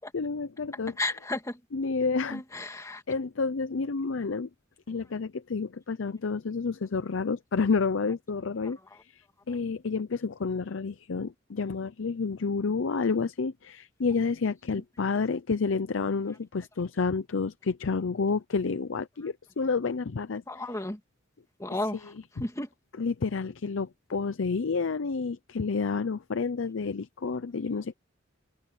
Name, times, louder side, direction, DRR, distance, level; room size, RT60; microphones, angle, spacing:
voice 1, 0.1-0.9 1.7-2.7 3.1-4.5 4.9-20.4 22.4-22.5 23.0-27.9, left 4 dB, 80° left, 0.6 m, -30 dB
voice 2, 1.0-1.6 2.3-3.0 14.7-14.8 20.5-21.0 21.6-22.1 22.4-22.7, left 2 dB, 15° left, 2.0 m, -33 dB
head